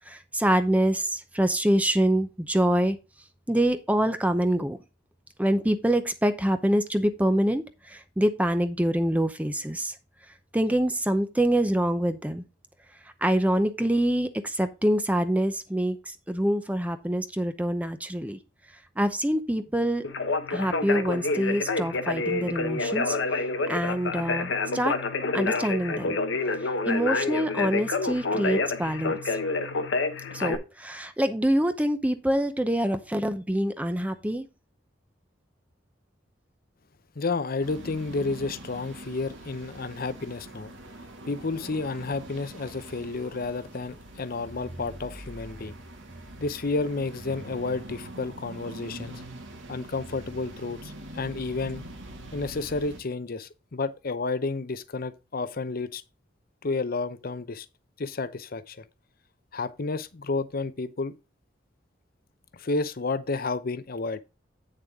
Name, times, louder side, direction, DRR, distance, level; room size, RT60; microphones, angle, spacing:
voice 1, 0.1-3.0 3.5-4.8 5.4-9.9 10.5-12.4 13.2-16.0 16.3-18.4 19.0-20.0 20.5-23.2 23.7-24.9 25.3-26.1 26.8-29.1 30.3-34.5, right 1 dB, 10° right, 0.7 m, -25 dB
Conversation, 20.0-30.6, left 3 dB, 75° left, 1.0 m, -28 dB
voice 2, 37.2-40.7 41.2-45.7 46.4-49.2 49.7-51.8 52.3-56.0 56.6-57.7 58.0-58.8 59.5-61.1 62.5-64.2, left 3 dB, 50° left, 0.7 m, -31 dB
sound 1, 37.6-53.0, right 1 dB, 85° right, 2.2 m, -43 dB
8.8 x 6.7 x 3.6 m
head